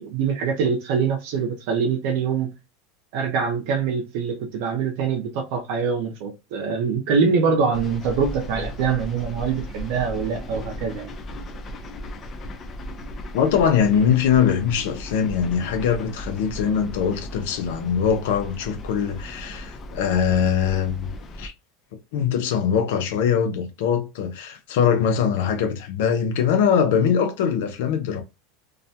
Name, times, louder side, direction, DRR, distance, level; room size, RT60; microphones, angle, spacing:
voice 1, 0.0-2.5 3.1-11.1, right 6 dB, 65° right, 0.6 m, -24 dB
sound 1, 7.7-21.5, equal, 30° left, 0.5 m, -36 dB
voice 2, 13.3-21.1 21.4-21.5 22.1-28.2, left 7 dB, 75° left, 0.5 m, -22 dB
2.3 x 2.1 x 2.7 m
supercardioid pair, 135°, 0 cm